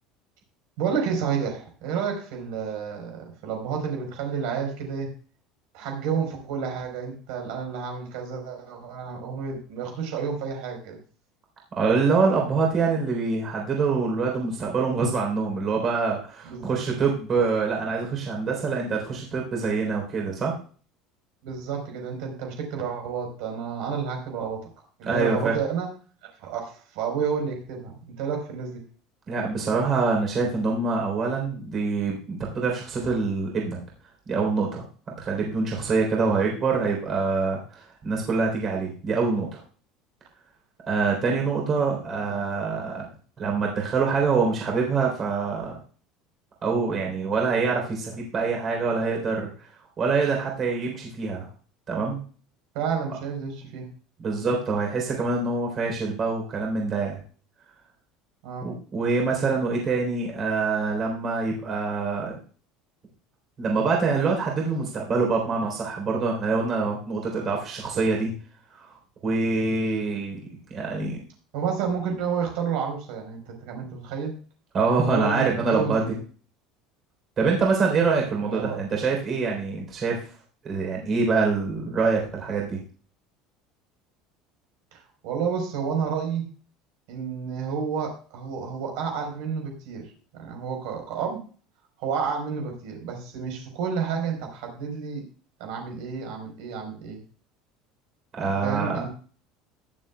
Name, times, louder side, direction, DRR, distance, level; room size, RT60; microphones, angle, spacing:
voice 1, 0.8-5.1 5.7-11.0 16.4-16.6 21.4-24.7 25.0-25.9 26.2-27.9 28.2-28.8 52.7-53.9 58.4-58.7 71.5-74.4 75.1-76.1 78.4-78.8 84.9-86.5 87.1-90.1 90.3-91.4 92.0-95.2 95.6-97.2 98.6-99.1, right 6 dB, 70° right, 2 dB, 4.2 m, -30 dB
voice 2, 11.8-20.5 25.0-25.6 29.3-33.8 34.3-34.8 35.2-39.6 40.9-43.1 43.4-45.8 46.6-49.5 50.0-51.5 51.9-52.2 54.2-57.2 58.6-62.3 63.6-68.3 68.8-68.9 69.2-70.4 70.7-71.2 74.7-76.1 77.4-80.2 80.6-82.8 98.3-99.1, right 4 dB, 30° right, 0 dB, 3.6 m, -25 dB
21.5 x 7.4 x 2.3 m, 0.41 s
cardioid pair, 160°, 0 cm